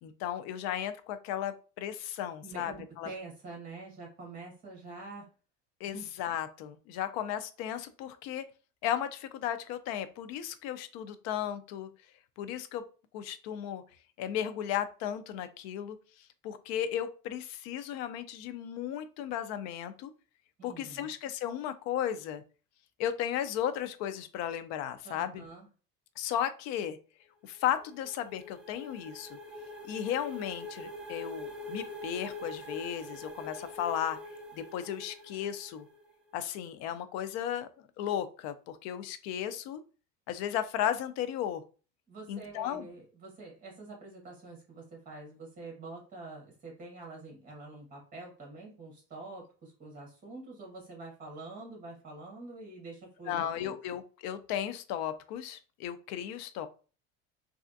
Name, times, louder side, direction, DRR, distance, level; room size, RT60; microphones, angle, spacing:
voice 1, 0.0-3.1 5.8-8.4 8.8-11.9 12.4-12.8 13.1-13.8 14.2-16.0 16.4-20.1 20.6-22.4 23.0-25.4 26.2-27.0 27.4-29.4 29.8-34.2 34.5-35.9 36.3-39.8 40.3-41.6 42.3-42.9 53.3-56.7, left 10 dB, 60° left, 11 dB, 0.5 m, -35 dB
voice 2, 2.4-5.3 5.8-6.0 20.6-21.1 25.0-25.7 42.1-53.8, right 3 dB, 25° right, 0 dB, 1.5 m, -46 dB
sound 1, 27.6-36.2, left 2 dB, 5° right, 0.3 m, -44 dB
3.2 x 2.4 x 2.5 m, 0.36 s
cardioid pair, 150°, 31 cm